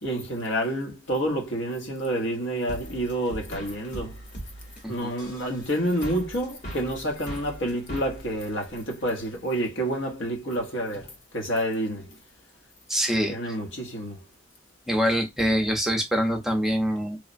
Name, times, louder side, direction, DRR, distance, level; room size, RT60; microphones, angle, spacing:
voice 1, 0.0-4.2 4.9-12.1 13.3-14.2, right 1 dB, 85° left, 0.9 m, -29 dB
sound 1, 2.7-9.3, right 1 dB, 40° left, 0.9 m, -41 dB
voice 2, 12.9-13.3 14.9-17.2, equal, ahead, 0.5 m, -24 dB
3.1 x 2.0 x 2.5 m
head